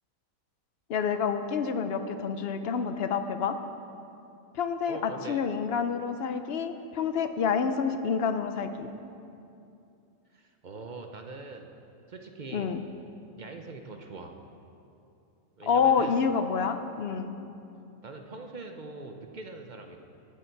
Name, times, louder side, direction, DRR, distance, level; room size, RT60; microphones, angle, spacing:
voice 1, 0.9-3.6 4.6-8.9 12.5-12.8 15.7-17.3, left 6 dB, 60° left, 9 dB, 0.7 m, -28 dB
voice 2, 4.9-5.4 10.3-11.7 12.1-12.7 13.4-14.4 15.6-16.2 18.0-20.0, right 3 dB, 45° right, 4 dB, 0.7 m, -42 dB
20.5 x 7.0 x 4.6 m, 2.7 s
omnidirectional pair, 1.4 m